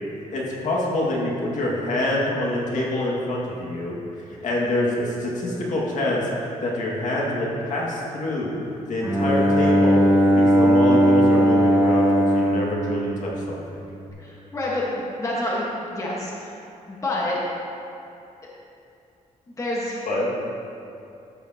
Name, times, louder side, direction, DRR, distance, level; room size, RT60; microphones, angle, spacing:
voice 1, 0.3-4.0 4.3-8.5 8.9-10.1 10.3-13.8 20.1-20.3, left 1 dB, 65° left, -4 dB, 2.1 m, -26 dB
Bowed string instrument, 9.0-13.9, equal, 15° right, 1.7 m, -19 dB
voice 2, 14.2-16.6 16.9-17.4 19.6-20.0, left 1 dB, 25° left, -5 dB, 1.4 m, -28 dB
13.0 x 8.7 x 2.9 m, 2.7 s
wide cardioid pair, 145°, 14 cm